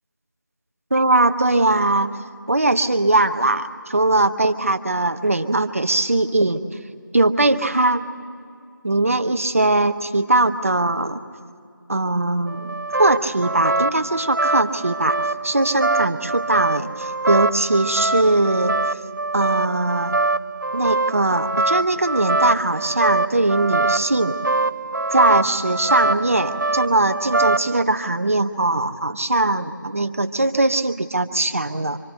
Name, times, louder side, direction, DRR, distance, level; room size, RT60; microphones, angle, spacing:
voice 1, 0.9-2.2 2.5-6.6 7.1-8.0 8.8-11.2 11.9-15.2 15.4-19.0 19.3-20.1 20.7-24.3 25.1-32.0, right 2 dB, 40° right, 9 dB, 0.8 m, -20 dB
sound 1, 12.5-27.8, right 2 dB, 70° right, 0.6 m, -23 dB
28.5 x 25.5 x 4.4 m, 2.3 s
figure-of-eight pair, 175°, 11 cm